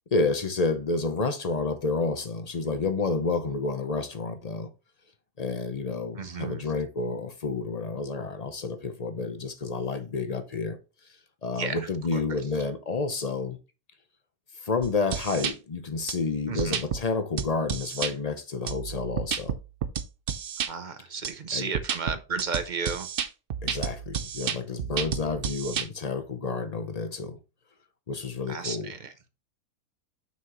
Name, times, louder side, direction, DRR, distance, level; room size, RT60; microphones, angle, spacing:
voice 1, 0.1-4.7 5.4-10.8 11.4-13.6 14.6-19.6 21.5-21.7 23.6-27.4 28.1-28.9, left 3 dB, 50° left, 0.4 m, -30 dB
voice 2, 6.2-6.6 11.5-12.4 16.5-16.8 20.7-23.1 28.5-29.1, right 5 dB, 45° right, 0.6 m, -33 dB
sound 1, 14.8-15.5 16.1-16.2 16.6-17.0 17.4-18.1 18.7-20.7 21.2-21.3 21.7-25.9, right 8 dB, 90° right, 0.4 m, -31 dB
7.3 x 5.9 x 3.0 m
omnidirectional pair, 1.8 m